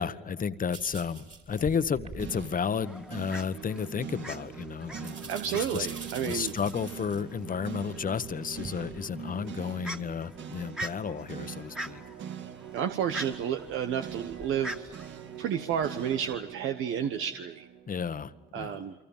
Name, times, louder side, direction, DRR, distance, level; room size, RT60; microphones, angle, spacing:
voice 1, 0.0-5.9 6.2-12.0 17.9-18.8, left 6 dB, 45° left, 12 dB, 1.3 m, -32 dB
sound 1, 0.7-2.6 3.3-3.8 5.0-7.2 8.1-9.1 9.6-9.7 10.2-10.3 11.4-11.5, right 4 dB, 40° right, 4.3 m, -45 dB
sound 2, 2.2-18.5, right 8 dB, 70° right, 1.8 m, -43 dB
Fowl, 2.7-16.3, right 1 dB, 5° right, 2.0 m, -45 dB
voice 2, 5.3-6.5 12.7-14.9 15.4-17.7 18.5-18.9, right 8 dB, 90° right, 7 dB, 1.2 m, -31 dB
29.5 x 24.0 x 7.4 m, 1.0 s
cardioid pair, 90°, 20 cm